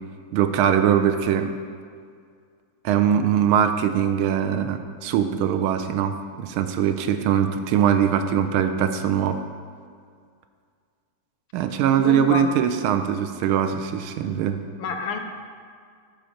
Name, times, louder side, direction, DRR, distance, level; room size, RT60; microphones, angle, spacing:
voice 1, 0.3-1.5 2.8-9.4 11.5-14.6, right 8 dB, 80° right, 8 dB, 1.4 m, -22 dB
voice 2, 11.9-12.5 14.8-15.2, left 5 dB, 75° left, 5 dB, 1.3 m, -28 dB
8.9 x 4.5 x 6.4 m, 2.1 s
omnidirectional pair, 2.4 m